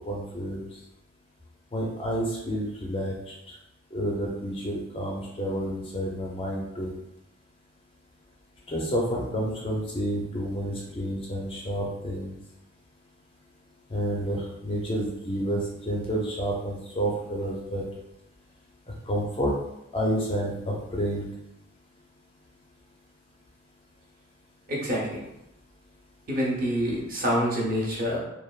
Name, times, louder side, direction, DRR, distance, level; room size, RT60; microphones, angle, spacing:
voice 1, 0.1-0.6 1.7-3.1 3.9-6.9 8.7-12.3 13.9-15.6 15.9-17.8 19.1-19.5 19.9-21.2, equal, 25° left, -2 dB, 0.4 m, -29 dB
voice 2, 24.7-25.2 26.3-28.2, equal, 40° right, -3 dB, 0.7 m, -26 dB
3.2 x 2.2 x 2.3 m, 0.87 s
head